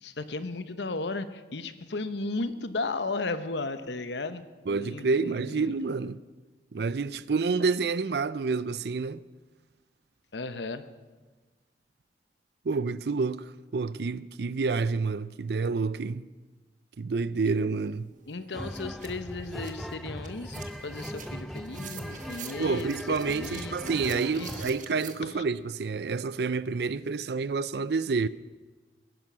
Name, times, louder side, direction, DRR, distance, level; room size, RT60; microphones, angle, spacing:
voice 1, 0.0-5.7 10.3-10.8 18.2-23.0 23.3-24.5 25.2-25.3, left 3 dB, 80° left, 0.9 m, -35 dB
voice 2, 4.7-6.2 6.7-9.2 12.6-16.2 17.0-18.1 22.6-28.3, right 4 dB, 65° right, 0.5 m, -28 dB
sound 1, 17.8-17.9 18.3-25.1, right 7 dB, 45° right, 1.3 m, -46 dB
sound 2, 18.5-24.8, equal, ahead, 0.4 m, -40 dB
20.5 x 11.0 x 6.2 m
head